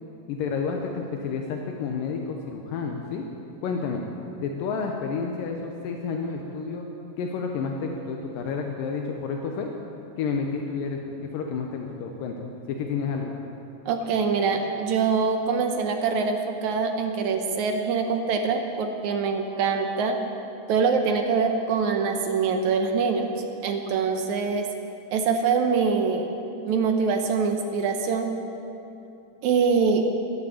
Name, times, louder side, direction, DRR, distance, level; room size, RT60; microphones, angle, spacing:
voice 1, 0.3-3.2 3.6-4.0 4.4-6.9 7.2-9.7 10.2-13.3, left 5 dB, 75° left, 2 dB, 2.5 m, -30 dB
voice 2, 13.9-20.2 20.7-23.3 23.6-24.7 25.1-26.3 26.6-28.3 29.4-30.1, right 5 dB, 75° right, 5 dB, 1.9 m, -24 dB
14.0 x 11.0 x 7.0 m, 2.8 s
omnidirectional pair, 4.1 m